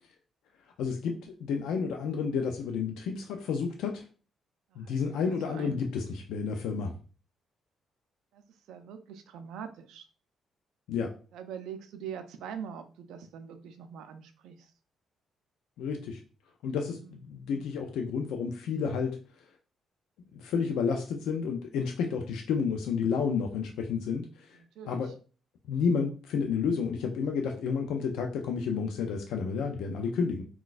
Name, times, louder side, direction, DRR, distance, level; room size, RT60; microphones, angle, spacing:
voice 1, 0.8-4.0 4.8-6.9 10.9-11.1 15.8-16.2 16.6-19.2 20.3-24.6 24.9-25.1 25.7-30.4, left 5 dB, 85° left, 3 dB, 0.4 m, -31 dB
voice 2, 5.3-5.9 8.3-10.1 11.3-14.7 17.0-17.2 24.5-25.1, right 7 dB, 85° right, 8 dB, 0.4 m, -43 dB
3.9 x 2.2 x 2.4 m, 0.37 s
cardioid pair, 90°, 0 cm